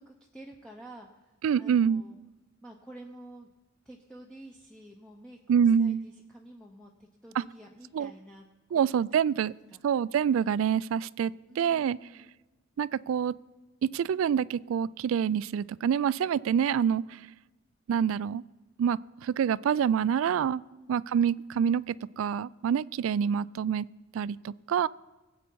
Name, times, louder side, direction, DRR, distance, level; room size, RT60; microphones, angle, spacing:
voice 1, 0.0-2.2 2.6-3.5 3.8-8.8 9.7-9.8 11.5-12.3 20.7-21.0, right 1 dB, 5° left, -1 dB, 0.8 m, -50 dB
voice 2, 1.4-2.0 5.5-6.0 7.9-8.1 8.7-9.5 9.8-12.0 12.8-13.3 13.8-17.2 17.9-18.4 18.8-20.6 20.9-23.9 24.1-24.9, right 8 dB, 75° right, 21 dB, 0.3 m, -26 dB
21.0 x 8.3 x 4.6 m, 1.2 s
head